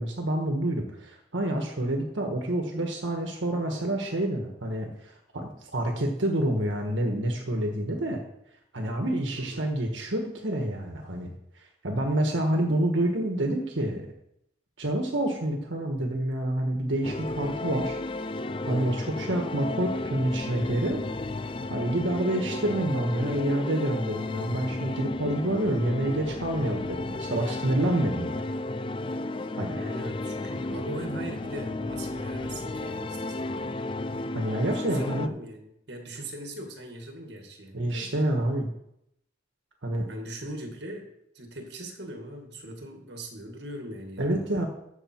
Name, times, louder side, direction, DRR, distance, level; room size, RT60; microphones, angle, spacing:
voice 1, 0.0-8.2 8.7-11.3 11.5-14.0 14.8-18.0 18.7-21.0 21.7-28.4 29.6-29.8 34.3-35.3 37.7-38.7 39.8-40.1 44.2-44.7, right 1 dB, 85° right, 2 dB, 1.5 m, -28 dB
voice 2, 9.4-9.7 19.2-19.5 29.8-33.7 34.7-38.1 40.0-41.1 41.3-44.5, right 1 dB, 60° right, 3 dB, 2.1 m, -40 dB
sound 1, 17.0-35.3, left 2 dB, 25° left, 0.3 m, -33 dB
14.5 x 7.0 x 4.6 m, 0.79 s
head